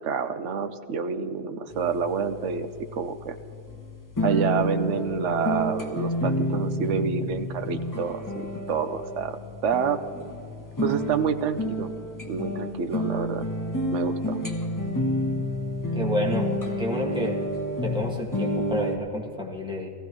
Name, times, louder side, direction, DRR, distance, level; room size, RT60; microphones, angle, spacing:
voice 1, 0.0-3.4 4.2-10.0 10.8-12.0 12.3-13.5 13.9-14.4, right 6 dB, 85° right, 10 dB, 1.1 m, -28 dB
sound 1, 1.7-19.0, equal, 15° left, 1.1 m, -30 dB
voice 2, 15.9-16.5 16.8-17.4 17.8-19.9, left 1 dB, 5° right, -2 dB, 1.8 m, -29 dB
17.5 x 15.0 x 3.1 m, 2.6 s
omnidirectional pair, 1.2 m